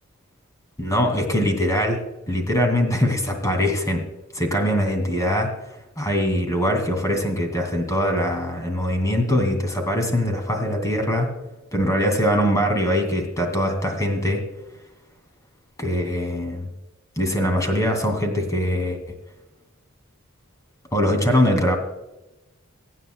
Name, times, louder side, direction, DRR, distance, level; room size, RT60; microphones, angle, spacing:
voice 1, 0.8-4.0 4.3-5.5 6.0-11.3 11.7-14.4 15.8-16.7 17.2-19.0 20.9-21.8, equal, 15° left, 4 dB, 2.5 m, -22 dB
24.0 x 9.2 x 2.3 m, 0.99 s
head